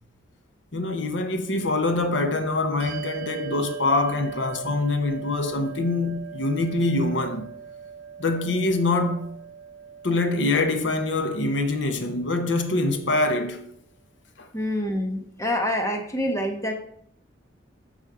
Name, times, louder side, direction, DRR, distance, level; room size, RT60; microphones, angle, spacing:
voice 1, 0.7-7.5 8.2-9.3 10.0-13.7 14.4-14.5, left 2 dB, 70° left, 1.0 m, -24 dB
Bell, 2.8-12.8, right 7 dB, 50° right, 1.7 m, -41 dB
voice 2, 14.5-16.7, left 1 dB, 15° left, 1.2 m, -26 dB
13.5 x 5.4 x 4.9 m
head